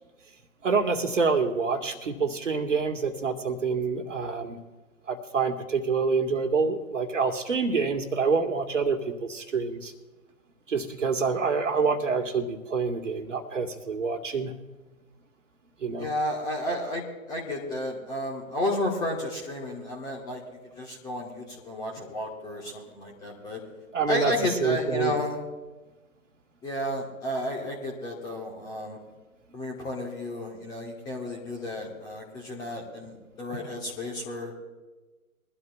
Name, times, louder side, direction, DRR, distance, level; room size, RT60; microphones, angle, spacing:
voice 1, 0.6-4.6 5.1-9.9 10.7-14.5 15.8-16.1 23.9-24.3 24.6-25.1, right 5 dB, 60° right, 6 dB, 1.8 m, -27 dB
voice 2, 16.0-20.4 20.7-23.6 24.1-25.4 26.6-29.0 29.5-34.5, left 1 dB, 10° left, 0 dB, 1.5 m, -32 dB
22.5 x 12.5 x 2.4 m, 1.2 s
figure-of-eight pair, 135°, 43 cm